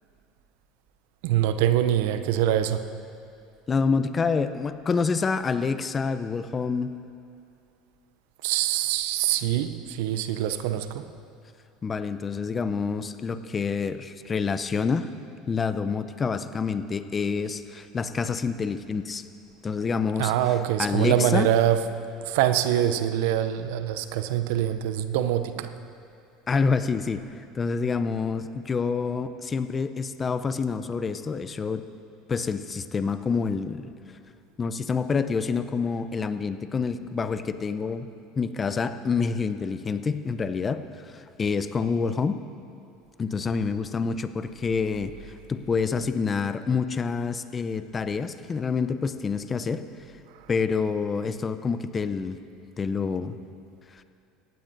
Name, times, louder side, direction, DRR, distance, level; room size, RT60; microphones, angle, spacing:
voice 1, 1.2-2.9 8.4-11.1 20.2-21.8 22.2-25.7 50.3-50.5, right 11 dB, 70° right, 11 dB, 0.6 m, -24 dB
voice 2, 3.7-6.9 11.8-15.1 15.5-19.2 19.6-20.3 20.8-21.5 26.5-27.2 27.5-31.8 32.3-33.9 34.6-38.1 38.4-42.4 43.2-45.1 45.5-49.8 50.5-52.4 52.8-53.4, left 5 dB, 30° left, 11 dB, 0.6 m, -27 dB
18.5 x 15.5 x 2.7 m, 2.5 s
hypercardioid pair, 75°, 0 cm